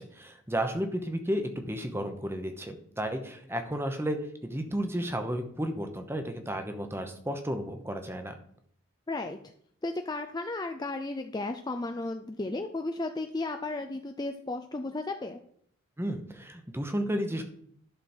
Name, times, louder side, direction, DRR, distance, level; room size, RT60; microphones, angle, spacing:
voice 1, 0.0-8.4 16.0-17.4, equal, 10° right, 6 dB, 0.9 m, -33 dB
voice 2, 9.1-9.4 9.8-15.4, left 2 dB, 20° left, 6 dB, 0.4 m, -34 dB
11.5 x 6.4 x 4.4 m, 0.65 s
head